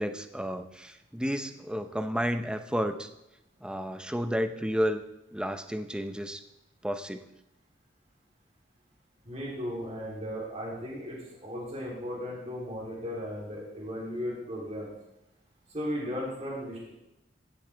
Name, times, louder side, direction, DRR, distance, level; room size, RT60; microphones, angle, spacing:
voice 1, 0.0-3.1 3.6-5.0 5.3-6.4 6.8-7.3, equal, 5° right, 8 dB, 0.6 m, -31 dB
voice 2, 9.2-14.9 15.7-16.9, equal, 35° right, -6 dB, 3.2 m, -36 dB
15.5 x 8.1 x 3.4 m, 0.89 s
head